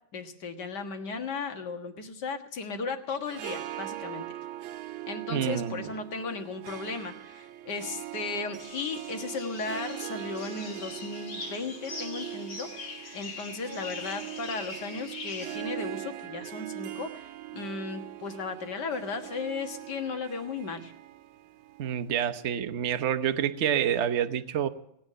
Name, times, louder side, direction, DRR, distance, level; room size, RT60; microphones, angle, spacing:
voice 1, 0.1-4.2 5.1-20.9, left 4 dB, 60° left, 6 dB, 2.1 m, -36 dB
Harp, 3.1-22.5, right 13 dB, 85° right, 1.6 m, -41 dB
voice 2, 5.3-5.9 21.8-24.7, right 9 dB, 50° right, 10 dB, 0.8 m, -28 dB
sound 1, 8.6-15.6, left 3 dB, 75° left, 3.0 m, -42 dB
18.0 x 8.9 x 7.3 m, 0.78 s
omnidirectional pair, 2.2 m